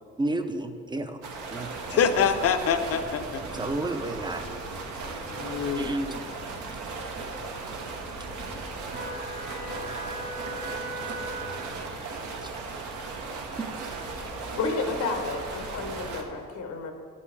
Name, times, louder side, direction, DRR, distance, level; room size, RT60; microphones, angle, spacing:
voice 1, 0.2-1.2 1.5-1.8 3.5-4.5 5.8-6.1 12.4-12.5, right 2 dB, 15° right, 8 dB, 0.5 m, -31 dB
sound 1, 1.2-16.2, right 4 dB, 80° right, 1.0 m, -37 dB
sound 2, 1.7-16.2, right 1 dB, 60° right, 1.9 m, -42 dB
voice 2, 1.9-3.4 5.3-6.0, left 7 dB, 50° left, 9 dB, 0.6 m, -25 dB
voice 3, 14.3-16.9, left 4 dB, 80° left, 5 dB, 0.9 m, -31 dB
11.0 x 5.4 x 3.3 m, 2.1 s
cardioid pair, 90°, 30 cm